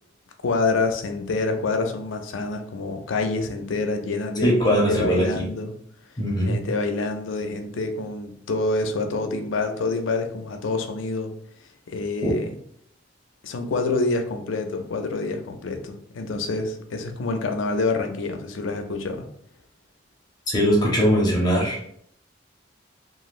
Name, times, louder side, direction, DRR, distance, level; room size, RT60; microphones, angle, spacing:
voice 1, 0.4-5.7 6.4-11.3 11.9-12.6 13.4-19.3, left 3 dB, 90° left, 6 dB, 0.4 m, -27 dB
voice 2, 4.4-5.5 6.2-6.6 12.2-12.3 20.5-22.0, equal, 20° left, -2 dB, 0.5 m, -21 dB
3.0 x 2.4 x 2.5 m, 0.66 s
head